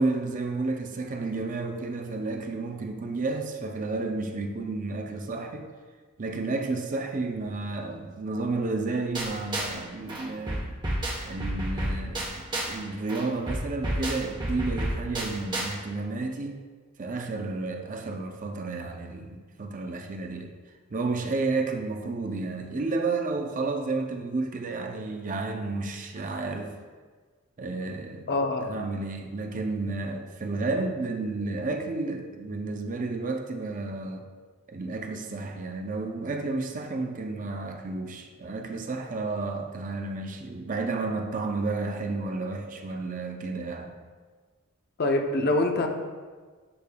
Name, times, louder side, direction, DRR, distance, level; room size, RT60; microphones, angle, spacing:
voice 1, 0.0-5.7 6.2-10.8 11.3-16.6 17.0-20.5 20.9-26.7 27.6-28.3 28.6-34.3 34.7-43.9, right 3 dB, 40° right, 4 dB, 0.5 m, -31 dB
sound 1, 9.1-9.8 10.1-12.8 13.1-15.7, right 1 dB, 20° right, 1.0 m, -31 dB
voice 2, 28.3-28.7 45.0-45.9, left 2 dB, 45° left, 3 dB, 0.7 m, -24 dB
11.0 x 5.1 x 2.3 m, 1.5 s
head